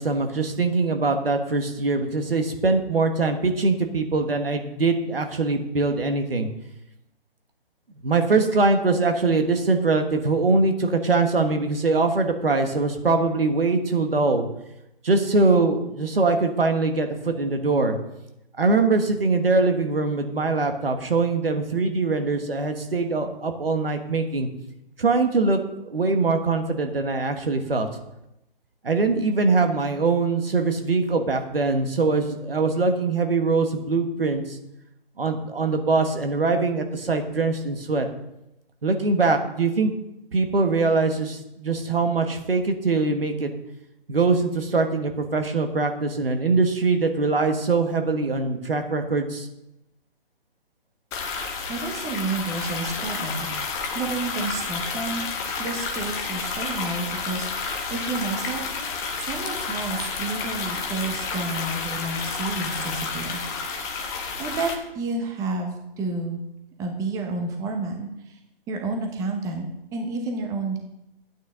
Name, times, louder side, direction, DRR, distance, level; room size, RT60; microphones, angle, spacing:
voice 1, 0.0-6.5 8.0-14.4 15.0-18.0 18.6-24.5 25.0-25.6 25.9-27.9 28.8-34.6 35.2-38.1 38.8-39.9 40.3-43.5 44.1-49.5, right 3 dB, 75° right, 6 dB, 1.5 m, -22 dB
sound 1, 51.1-64.7, left 5 dB, 10° left, 0.6 m, -30 dB
voice 2, 51.7-53.5 53.9-55.2 55.6-58.6 59.2-63.4 64.4-66.4 66.8-68.4 68.7-69.7 69.9-70.8, right 3 dB, 10° right, 2 dB, 1.0 m, -30 dB
12.0 x 9.2 x 3.7 m, 0.87 s
figure-of-eight pair, 135°, 30 cm